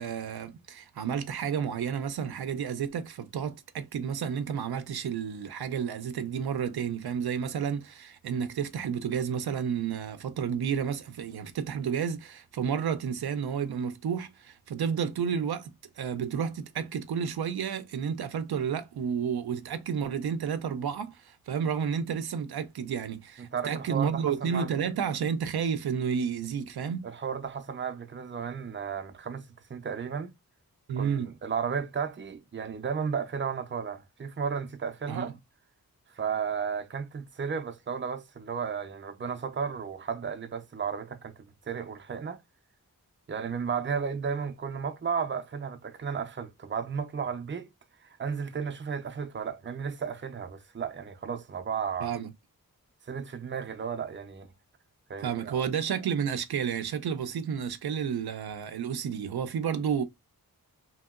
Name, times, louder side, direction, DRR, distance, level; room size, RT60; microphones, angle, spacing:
voice 1, 0.0-27.1 30.9-31.3 35.1-35.3 52.0-52.3 55.2-60.0, right 7 dB, 80° right, 0.5 m, -31 dB
voice 2, 23.4-24.7 27.0-30.3 31.0-35.3 36.1-41.3 41.7-42.4 43.3-47.7 48.0-52.1 53.1-54.5 55.1-55.7, right 6 dB, 30° right, 0.5 m, -34 dB
2.9 x 2.7 x 2.3 m
wide cardioid pair, 65°, 37 cm